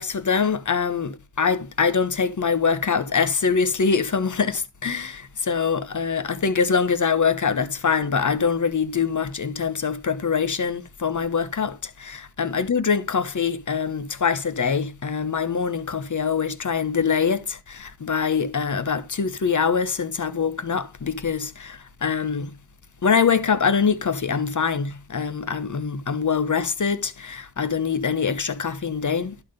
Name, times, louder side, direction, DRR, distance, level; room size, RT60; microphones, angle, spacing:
voice 1, 0.0-22.6 23.0-29.4, left 6 dB, 40° left, 1.1 m, -24 dB
11.5 x 3.8 x 5.1 m
cardioid pair, 40°, 44 cm